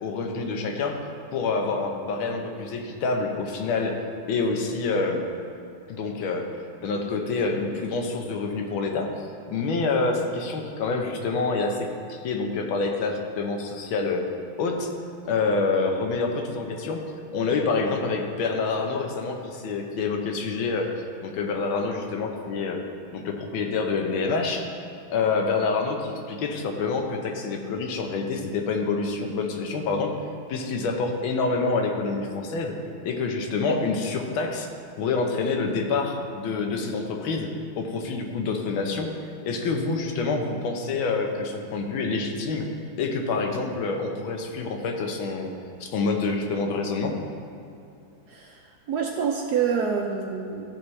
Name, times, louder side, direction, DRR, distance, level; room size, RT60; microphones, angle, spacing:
voice 1, 0.0-1.0 1.3-4.0 4.3-5.2 5.9-6.5 6.8-9.1 9.5-14.3 14.6-14.9 15.2-17.0 17.3-20.9 21.2-22.8 23.1-24.7 25.1-30.1 30.5-32.7 33.0-34.7 35.0-39.1 39.4-42.7 43.0-45.5 45.8-47.2, left 4 dB, 80° left, 3 dB, 1.6 m, -27 dB
voice 2, 48.3-50.7, right 6 dB, 75° right, 1 dB, 0.9 m, -27 dB
14.0 x 5.1 x 3.2 m, 2.5 s
omnidirectional pair, 2.2 m